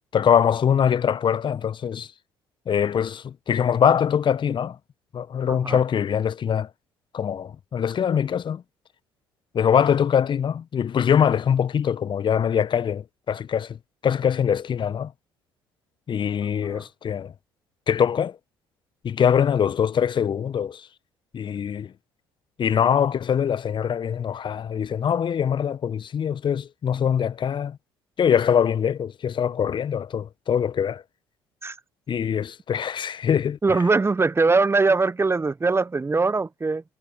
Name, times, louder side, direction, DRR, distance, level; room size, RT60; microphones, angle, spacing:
voice 1, 0.1-2.1 2.7-4.8 5.1-6.7 7.1-8.6 9.5-13.8 14.0-15.1 16.1-17.3 17.9-18.4 19.0-20.9 21.3-21.9 22.6-27.8 28.2-31.0 32.1-33.6, left 8 dB, 40° left, 1.3 m, -23 dB
voice 2, 5.5-5.8 16.6-16.8 31.6-31.8 33.6-36.8, right 3 dB, 20° right, 1.3 m, -21 dB
figure-of-eight pair, 50°, 12 cm